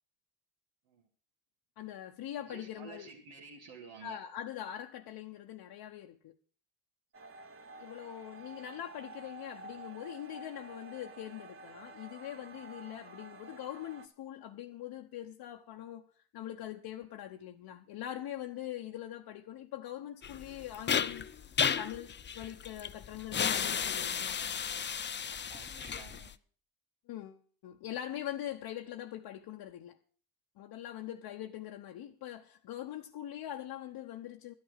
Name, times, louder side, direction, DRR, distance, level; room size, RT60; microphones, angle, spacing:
voice 1, 1.8-3.1 4.0-6.3 7.8-16.1 16.3-21.3 21.8-24.4 27.1-30.0 30.6-34.5, left 12 dB, 65° left, 1.0 m, -43 dB
voice 2, 2.4-4.2 25.3-26.3, right 5 dB, 80° right, 2.2 m, -51 dB
sound 1, 7.1-14.1, right 3 dB, 30° right, 1.3 m, -50 dB
sound 2, 20.2-26.3, left 7 dB, 25° left, 0.6 m, -33 dB
11.5 x 10.5 x 6.5 m
cardioid pair, 90°, 42 cm